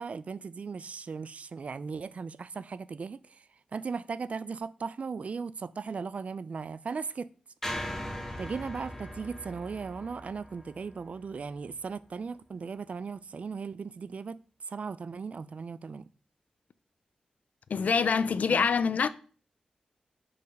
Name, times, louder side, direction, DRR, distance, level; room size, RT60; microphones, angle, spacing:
voice 1, 0.0-3.4 3.7-7.3 8.4-14.4 14.7-16.1 18.5-18.7, right 5 dB, 60° right, 0.3 m, -37 dB
sound 1, 7.6-11.9, equal, 15° left, 1.6 m, -40 dB
voice 2, 17.7-19.1, left 5 dB, 70° left, 0.4 m, -25 dB
5.3 x 4.1 x 5.3 m
cardioid pair, 65°, 3 cm